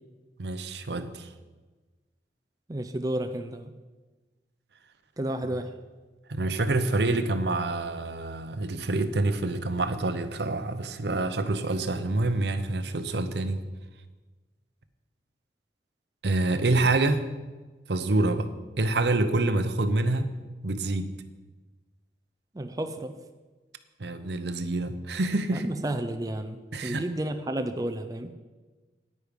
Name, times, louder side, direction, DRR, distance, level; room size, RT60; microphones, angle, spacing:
voice 1, 0.4-1.3 6.3-13.6 16.2-17.2 17.9-18.5 18.8-20.3 20.6-21.1 24.0-25.7 26.7-27.0, right 2 dB, 70° right, 10 dB, 0.8 m, -27 dB
voice 2, 2.7-3.7 5.2-5.7 22.5-23.2 25.5-28.3, right 1 dB, 20° right, 7 dB, 0.5 m, -32 dB
9.7 x 9.6 x 5.2 m, 1.3 s
head